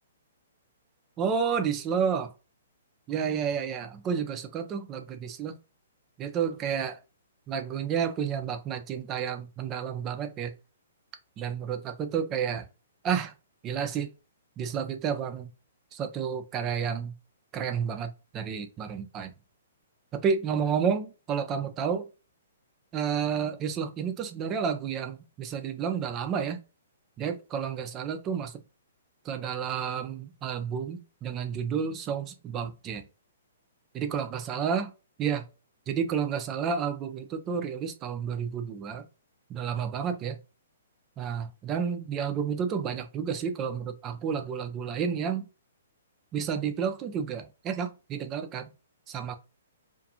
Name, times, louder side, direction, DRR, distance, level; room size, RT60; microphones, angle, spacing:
voice 1, 1.2-2.3 3.1-5.6 6.2-7.0 7.5-10.6 11.4-12.7 13.0-13.3 13.6-14.1 14.6-15.5 15.9-17.1 17.5-19.3 20.1-22.1 22.9-26.6 27.2-28.6 29.2-33.0 33.9-34.9 35.2-35.5 35.9-39.1 39.5-40.4 41.2-45.5 46.3-48.7 49.1-49.4, right 7 dB, 25° right, 0.4 m, -30 dB
2.5 x 2.4 x 2.6 m
hypercardioid pair, 135°, 0 cm